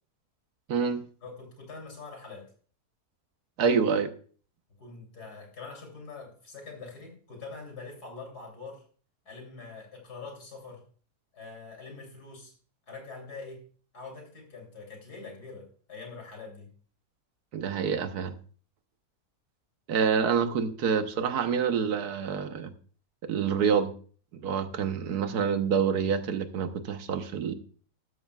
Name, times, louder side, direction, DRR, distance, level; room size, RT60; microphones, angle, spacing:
voice 1, 0.7-1.0 3.6-4.1 17.5-18.3 19.9-22.7 23.2-23.9 24.3-27.5, right 6 dB, 80° right, 9 dB, 1.5 m, -27 dB
voice 2, 1.2-2.5 4.8-8.8 9.3-10.8 11.3-12.5 12.9-13.6 13.9-16.7 24.7-24.8, left 4 dB, 85° left, 2 dB, 3.7 m, -44 dB
13.0 x 12.0 x 2.3 m, 0.43 s
omnidirectional pair, 1.6 m